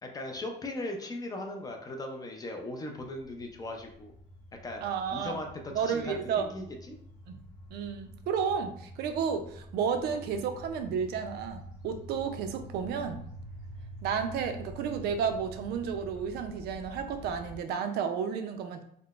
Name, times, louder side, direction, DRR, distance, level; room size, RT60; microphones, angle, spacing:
voice 1, 0.0-4.1 4.6-4.8 5.1-7.0, left 2 dB, 20° left, 3 dB, 0.3 m, -38 dB
sound 1, 3.0-17.6, equal, 80° left, 0.9 m, -47 dB
voice 2, 4.8-5.4 5.7-6.5 7.3-7.4 7.7-13.2 14.0-18.8, right 7 dB, 70° right, 7 dB, 0.4 m, -32 dB
3.7 x 2.0 x 2.3 m, 0.66 s
cardioid pair, 145°, 17 cm